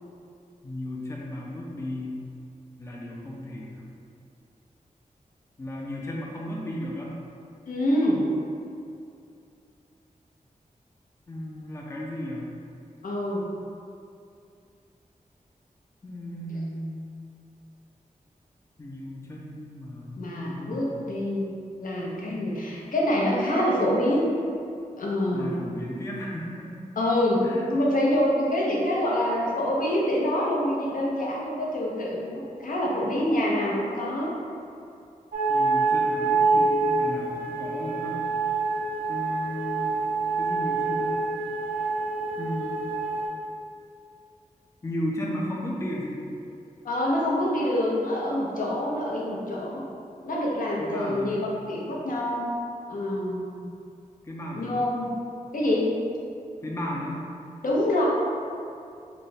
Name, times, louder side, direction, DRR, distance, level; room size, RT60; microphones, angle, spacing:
voice 1, 0.6-2.2 2.8-3.8 5.6-7.1 11.3-12.5 16.0-17.0 18.8-21.1 25.3-26.7 27.4-27.7 35.5-38.3 39.1-39.9 40.4-41.2 42.4-42.8 44.8-46.2 50.8-51.4 54.2-54.9 56.6-57.2, left 1 dB, 20° left, -3 dB, 0.4 m, -34 dB
voice 2, 7.7-8.2 13.0-13.5 16.5-16.6 20.2-21.5 21.8-24.2 25.0-25.6 27.0-27.4 27.7-34.3 46.8-49.8 50.2-52.5 52.9-53.6 54.5-55.1 55.5-55.9 57.6-58.1, left 1 dB, 75° left, -4 dB, 0.7 m, -26 dB
sound 1, 35.3-43.3, right 3 dB, 85° right, 0.5 m, -26 dB
3.3 x 2.2 x 4.0 m, 2.5 s
wide cardioid pair, 110°, 14 cm